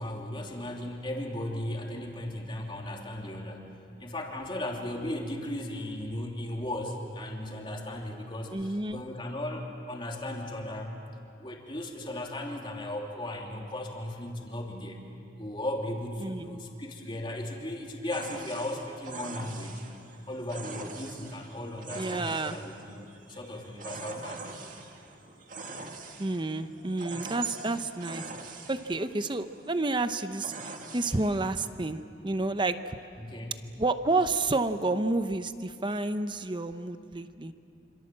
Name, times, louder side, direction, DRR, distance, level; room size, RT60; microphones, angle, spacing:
voice 1, 0.0-3.7 4.0-10.9 11.4-15.0 15.4-19.9 20.3-24.8 33.2-33.6, left 1 dB, 25° left, 0 dB, 3.1 m, -36 dB
voice 2, 8.5-9.0 16.2-16.6 21.9-22.6 26.2-28.2 28.7-33.0 33.8-37.5, right 2 dB, 25° right, 10 dB, 0.8 m, -30 dB
sound 1, 18.1-31.7, right 4 dB, 45° right, 2.2 m, -43 dB
27.0 x 27.0 x 7.6 m, 2.6 s
head